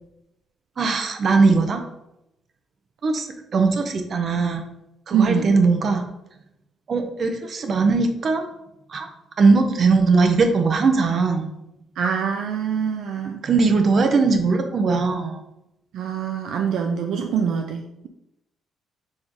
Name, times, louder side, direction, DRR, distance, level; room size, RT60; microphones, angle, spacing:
voice 1, 0.8-1.8 3.0-4.6 5.1-6.0 6.9-8.4 8.9-9.1 9.4-11.5 13.4-15.4, right 4 dB, 50° right, 5 dB, 1.1 m, -19 dB
voice 2, 5.1-5.5 12.0-13.4 15.9-18.1, right 7 dB, 75° right, 4 dB, 0.5 m, -24 dB
6.5 x 3.6 x 4.7 m, 0.86 s
cardioid pair, 90°, 0 cm